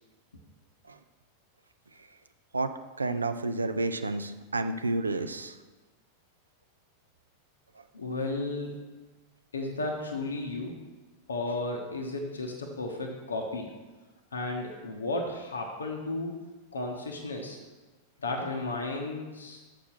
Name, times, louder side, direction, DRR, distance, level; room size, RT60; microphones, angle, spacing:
voice 1, 3.0-5.5, right 2 dB, 80° right, 9 dB, 0.6 m, -30 dB
voice 2, 7.9-8.8 9.5-10.8 11.3-13.7 14.3-16.3 16.7-17.6 18.2-19.6, left 2 dB, 75° left, 1 dB, 1.2 m, -33 dB
7.5 x 7.0 x 6.2 m, 1.2 s
figure-of-eight pair, 90°, 0 cm